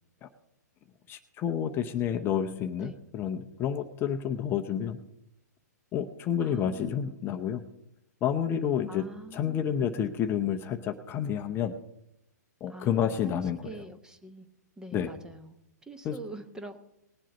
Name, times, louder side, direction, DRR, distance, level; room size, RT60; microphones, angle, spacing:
voice 1, 1.1-5.0 5.9-7.6 8.2-9.0 9.3-11.7 12.6-13.6 14.9-15.1 16.0-16.2, left 9 dB, 25° left, 7 dB, 0.8 m, -29 dB
voice 2, 6.4-7.3 8.9-10.0 12.7-14.5 14.8-16.8, right 2 dB, 5° right, 9 dB, 1.0 m, -45 dB
19.5 x 7.5 x 5.3 m, 0.80 s
hypercardioid pair, 125°, 10 cm